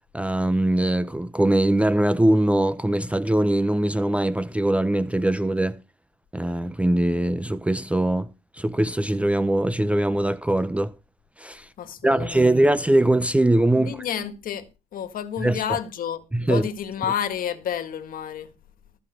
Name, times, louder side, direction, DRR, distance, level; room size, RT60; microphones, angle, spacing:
voice 1, 0.1-5.8 6.3-8.3 8.5-10.9 11.4-11.7 12.0-14.0 15.4-15.6 16.3-16.7, right 1 dB, 5° right, 0.6 m, -21 dB
voice 2, 11.8-12.5 13.8-18.5, left 9 dB, 55° left, 1.7 m, -30 dB
14.5 x 5.8 x 6.2 m
cardioid pair, 110°, 17 cm